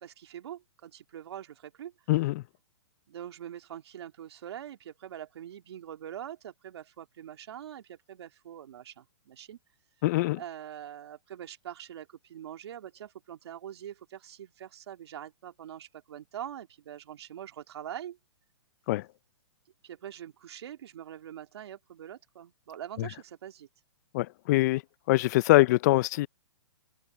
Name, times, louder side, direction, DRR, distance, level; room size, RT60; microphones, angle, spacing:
voice 1, 0.0-1.9 3.1-9.6 10.4-18.2 19.8-23.7, right 10 dB, 65° right, 2.6 m, -43 dB
voice 2, 2.1-2.4 10.0-10.4 18.9-19.1 23.0-23.1 24.1-24.8 25.1-26.3, left 19 dB, 40° left, 0.5 m, -23 dB
hypercardioid pair, 140°, 15 cm